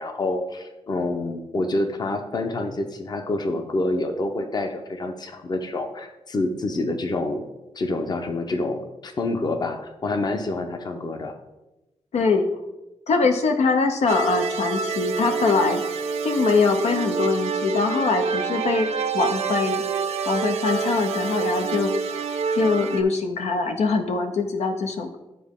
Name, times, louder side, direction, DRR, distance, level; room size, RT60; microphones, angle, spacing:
voice 1, 0.0-7.5 7.7-11.3, left 2 dB, 40° left, 6 dB, 0.8 m, -27 dB
voice 2, 12.1-12.4 13.1-15.8 16.2-18.9 19.1-19.8 20.3-21.9 22.6-25.2, left 4 dB, 85° left, 6 dB, 0.7 m, -23 dB
sound 1, 14.1-23.0, right 5 dB, 75° right, 0.5 m, -27 dB
11.0 x 4.1 x 3.7 m, 0.99 s
wide cardioid pair, 135°, 11 cm